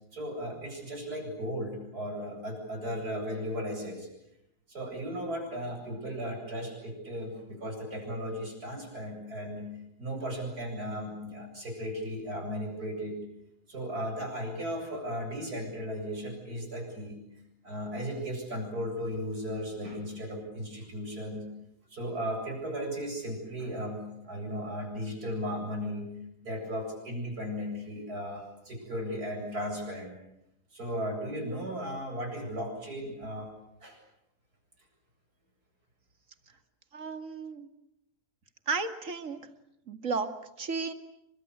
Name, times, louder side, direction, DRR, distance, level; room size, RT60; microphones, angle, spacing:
voice 1, 0.1-4.1 4.7-9.7 10.0-13.2 13.7-17.2 17.6-21.5 21.9-26.2 26.4-30.1 30.7-33.5 33.8-34.0, equal, 75° right, 3 dB, 8.7 m, -36 dB
voice 2, 36.9-37.7 38.7-39.4 39.9-40.3 40.6-40.9, right 4 dB, 55° right, 8 dB, 2.5 m, -33 dB
29.5 x 24.0 x 8.3 m, 0.80 s
omnidirectional pair, 1.6 m